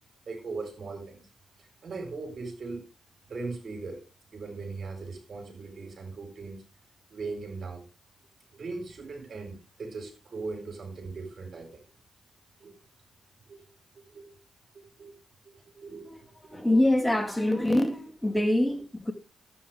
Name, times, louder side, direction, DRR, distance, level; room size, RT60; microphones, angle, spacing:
voice 1, 0.3-1.3 1.6-2.9 3.3-4.0 4.3-6.6 7.1-7.8 8.5-11.8 12.6-12.7 13.5-13.7 13.9-14.4 14.7-15.1 15.4-16.8, right 3 dB, 55° right, 4.7 m, -39 dB
voice 2, 16.1-19.1, left 1 dB, 10° left, 2.1 m, -25 dB
13.0 x 9.0 x 3.6 m
hypercardioid pair, 40°, 0 cm